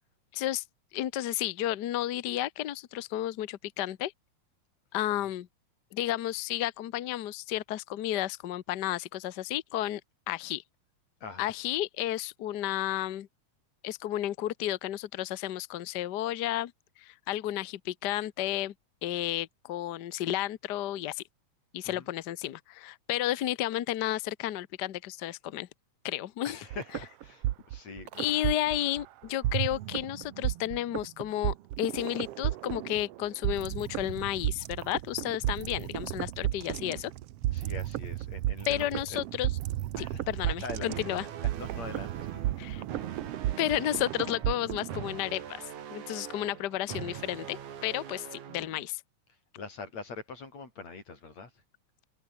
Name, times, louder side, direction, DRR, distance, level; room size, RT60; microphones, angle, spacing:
voice 1, 0.3-0.6 0.9-4.1 4.9-5.5 5.9-10.0 10.3-10.6 11.4-13.3 13.8-16.7 17.0-18.7 19.0-21.2 21.7-25.7 26.0-26.6 28.2-37.1 38.7-39.5 40.0-41.2 42.6-42.8 43.6-45.6 45.9-49.0, left 13 dB, 90° left, 0.9 m, -32 dB
voice 2, 26.4-28.4 37.5-39.2 40.0-41.3 41.6-42.9 43.2-43.3 49.6-51.5, left 4 dB, 65° left, 6.6 m, -43 dB
sound 1, 26.7-29.0 29.4-45.1, right 14 dB, 70° right, 1.6 m, -33 dB
sound 2, 40.9-48.9, right 9 dB, 90° right, 3.6 m, -43 dB
omnidirectional pair, 3.3 m